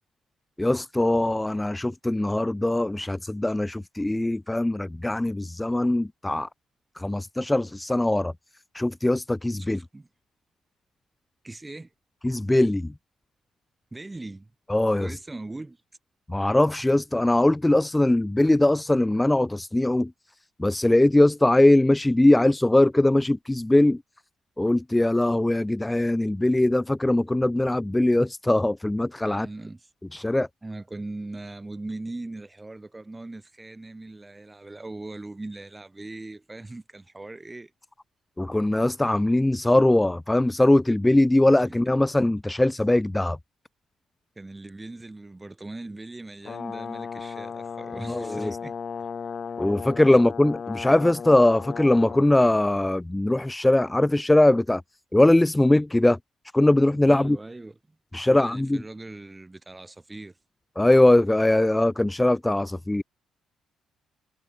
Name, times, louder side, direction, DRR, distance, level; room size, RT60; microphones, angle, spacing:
voice 1, 0.6-6.5 7.0-8.3 8.7-9.8 12.2-12.9 14.7-15.1 16.3-20.1 20.6-24.0 24.6-29.5 30.1-30.5 38.4-43.4 48.1-48.6 49.6-54.8 55.1-56.2 56.5-57.4 58.1-58.8 60.8-63.0, left 1 dB, 10° left, 0.3 m, -21 dB
voice 2, 9.6-10.1 11.4-11.9 13.9-14.5 15.0-15.8 29.2-29.9 30.6-37.7 41.6-41.7 44.4-49.1 50.1-50.2 57.0-57.8 58.1-60.4, right 2 dB, 15° right, 4.4 m, -40 dB
Brass instrument, 46.4-52.3, left 6 dB, 45° left, 0.7 m, -35 dB
cardioid pair, 90°, 0 cm